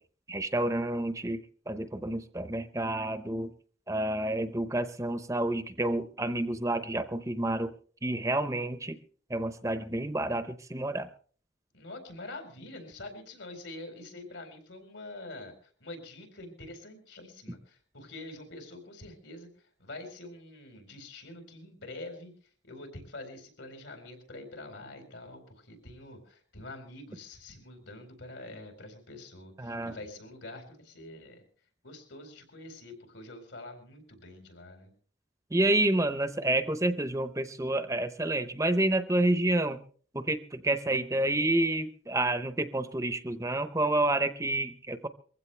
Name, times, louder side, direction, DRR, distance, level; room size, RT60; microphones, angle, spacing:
voice 1, 0.3-3.5 3.9-7.7 8.0-9.0 9.3-11.1 29.6-30.0 35.5-39.8 40.1-45.1, right 1 dB, 15° right, 11 dB, 0.7 m, -29 dB
voice 2, 11.7-15.5 15.8-19.5 19.8-22.3 22.6-31.4 31.8-34.9, left 2 dB, 75° left, 5 dB, 4.5 m, -45 dB
22.0 x 15.5 x 3.3 m, 0.43 s
head